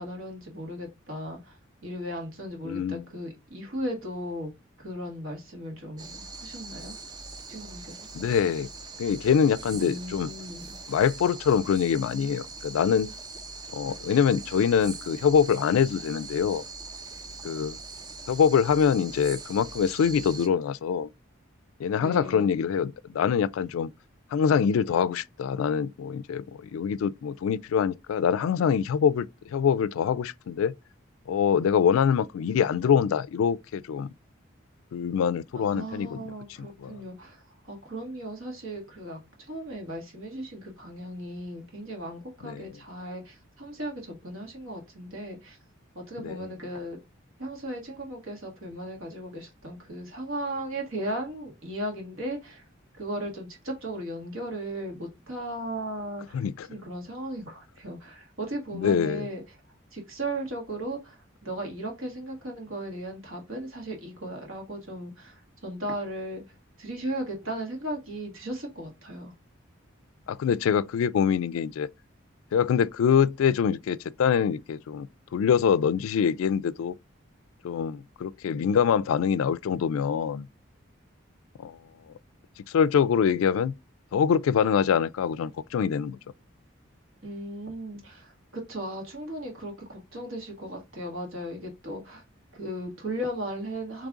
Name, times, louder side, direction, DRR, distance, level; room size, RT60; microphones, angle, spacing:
voice 1, 0.0-4.5 4.8-7.0 7.5-8.0 9.7-10.8 21.9-22.5 35.5-45.6 45.9-47.0 47.4-52.6 53.0-59.4 59.9-66.4 66.8-69.3 87.2-92.2 92.5-94.1, right 1 dB, 85° right, 1.7 m, -36 dB
voice 2, 2.6-3.0 8.1-8.7 9.0-10.3 10.9-13.1 13.7-16.6 17.4-17.8 18.3-21.1 21.8-23.9 24.3-30.7 31.3-34.1 34.9-36.2 36.6-37.0 42.4-42.7 46.2-46.5 56.3-56.7 58.7-59.3 70.3-71.9 72.5-77.0 77.6-80.5 81.6-81.8 82.1-82.2 82.6-83.7 84.1-86.2, left 7 dB, 85° left, 0.3 m, -24 dB
Borneo Jungle - Night, 6.0-20.5, right 3 dB, 20° right, 0.3 m, -42 dB
3.6 x 3.2 x 3.7 m
head